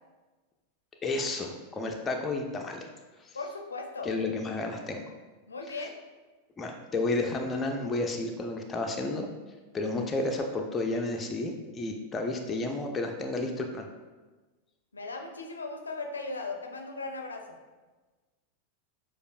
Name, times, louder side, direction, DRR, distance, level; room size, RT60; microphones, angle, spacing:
voice 1, 1.0-2.9 3.2-3.4 4.0-5.0 6.6-9.3 9.7-13.9, left 2 dB, 20° left, 2 dB, 0.4 m, -31 dB
voice 2, 3.3-4.1 5.5-5.9 14.9-17.6, left 3 dB, 75° left, 3 dB, 0.4 m, -37 dB
6.4 x 2.3 x 2.4 m, 1.3 s
figure-of-eight pair, 90°, 0 cm